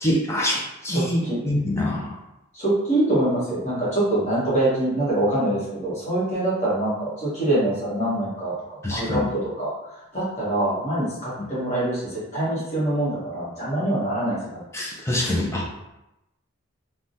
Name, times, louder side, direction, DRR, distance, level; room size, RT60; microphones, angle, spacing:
voice 1, 0.0-2.1 8.8-9.3 11.4-11.5 14.7-15.9, left 1 dB, 10° left, -3 dB, 0.4 m, -25 dB
voice 2, 0.9-1.4 2.5-9.7 10.1-14.6, right 1 dB, 30° left, -8 dB, 1.2 m, -24 dB
3.3 x 2.1 x 2.6 m, 0.92 s
head